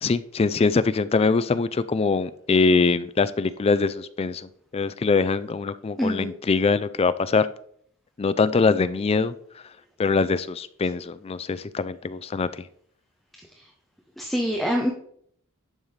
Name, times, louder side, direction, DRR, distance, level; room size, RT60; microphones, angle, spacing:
voice 1, 0.0-7.5 8.2-9.3 10.0-12.6, left 4 dB, 25° left, 14 dB, 0.3 m, -23 dB
voice 2, 6.0-6.3 14.2-14.9, equal, ahead, 1 dB, 0.7 m, -25 dB
11.0 x 5.6 x 3.3 m, 0.64 s
head